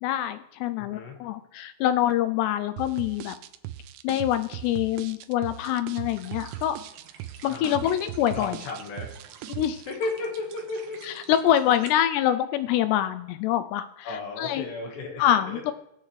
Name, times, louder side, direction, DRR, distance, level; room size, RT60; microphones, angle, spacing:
voice 1, 0.0-3.4 4.0-6.8 7.4-8.6 9.5-9.8 11.0-14.6 15.2-15.7, left 11 dB, 85° left, 11 dB, 2.4 m, -25 dB
voice 2, 0.8-1.2 7.5-7.9 8.3-9.1 9.8-11.2 14.0-15.7, left 3 dB, 70° left, 1 dB, 3.6 m, -34 dB
sound 1, 2.8-9.9, right 13 dB, 85° right, 3.0 m, -39 dB
sound 2, 6.1-11.9, right 7 dB, 70° right, 3.0 m, -49 dB
19.5 x 8.0 x 3.2 m, 0.79 s
omnidirectional pair, 5.4 m